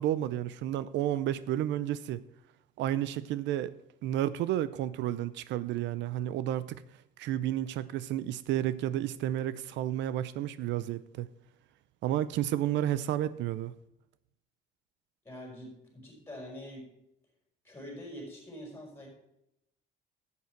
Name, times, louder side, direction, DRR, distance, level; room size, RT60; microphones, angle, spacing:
voice 1, 0.0-2.2 2.8-3.7 4.0-6.8 7.2-11.3 12.0-13.7, right 12 dB, 75° right, 0.5 m, -31 dB
voice 2, 15.2-16.9 17.6-19.1, equal, 15° left, 4.8 m, -45 dB
11.5 x 8.4 x 4.6 m
cardioid pair, 155°, 19 cm